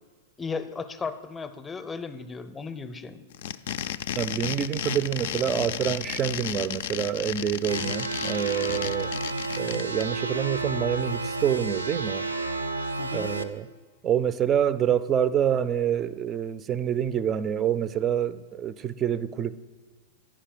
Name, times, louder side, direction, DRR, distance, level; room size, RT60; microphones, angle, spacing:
voice 1, 0.4-3.2 13.0-13.3, left 5 dB, 15° left, 9 dB, 0.6 m, -35 dB
sound 1, 3.3-10.0, left 10 dB, 65° left, 0.3 m, -33 dB
voice 2, 4.2-9.1 9.6-12.3 13.1-13.7 14.0-19.6, right 9 dB, 30° right, 15 dB, 0.4 m, -27 dB
sound 2, 7.7-13.4, right 3 dB, 85° right, 0.5 m, -31 dB
10.0 x 5.1 x 5.8 m, 1.5 s
hypercardioid pair, 105°, 0 cm